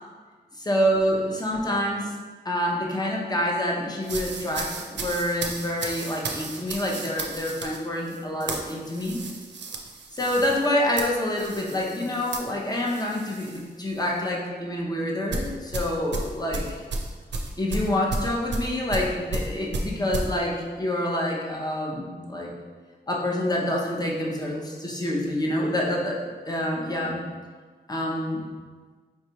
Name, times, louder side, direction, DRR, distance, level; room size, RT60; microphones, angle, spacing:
voice 1, 0.5-2.1 2.4-9.2 10.1-16.8 17.6-22.5 23.1-26.2 26.5-27.2 27.9-28.5, left 1 dB, 20° left, -2 dB, 0.7 m, -27 dB
sound 1, 4.0-13.6 14.0-14.2 15.3-20.3, right 3 dB, 85° right, 0.5 m, -33 dB
4.5 x 3.1 x 2.9 m, 1.5 s
wide cardioid pair, 80°, 18 cm